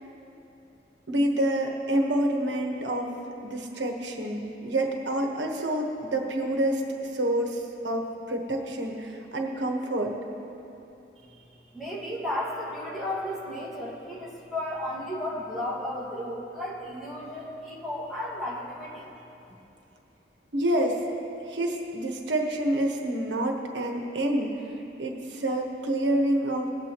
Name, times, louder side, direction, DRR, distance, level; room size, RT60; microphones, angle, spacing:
voice 1, 1.1-3.1 3.4-6.8 7.1-10.1 20.5-21.0 21.5-24.5 25.0-26.7, right 1 dB, 85° right, 1 dB, 1.2 m, -27 dB
voice 2, 11.7-19.1, left 1 dB, ahead, -6 dB, 1.9 m, -34 dB
19.5 x 8.1 x 3.0 m, 2.9 s
head